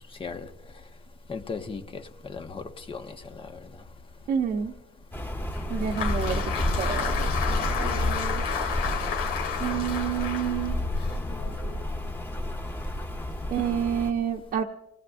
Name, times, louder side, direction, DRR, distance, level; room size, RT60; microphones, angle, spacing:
voice 1, 1.3-3.2, left 4 dB, 30° left, 1.4 m, -36 dB
voice 2, 4.3-4.7 5.7-6.4 6.8-7.3 7.6-8.4 9.6-10.8 13.5-14.6, right 8 dB, 60° right, 1.0 m, -29 dB
Rain, 5.1-14.1, left 1 dB, 10° left, 1.6 m, -30 dB
Applause, 5.5-11.8, left 7 dB, 90° left, 2.7 m, -32 dB
28.5 x 18.0 x 2.6 m
cardioid pair, 110°, 17 cm